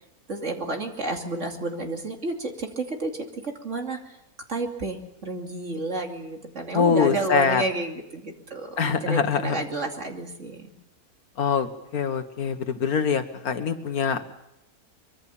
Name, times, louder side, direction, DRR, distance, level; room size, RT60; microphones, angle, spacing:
voice 1, 0.3-4.1 4.5-10.7, right 2 dB, 50° right, 3 dB, 3.0 m, -31 dB
voice 2, 6.7-7.6 8.8-9.6 11.4-14.2, left 6 dB, 70° left, 9 dB, 1.9 m, -24 dB
24.0 x 23.0 x 7.2 m, 0.85 s
omnidirectional pair, 1.6 m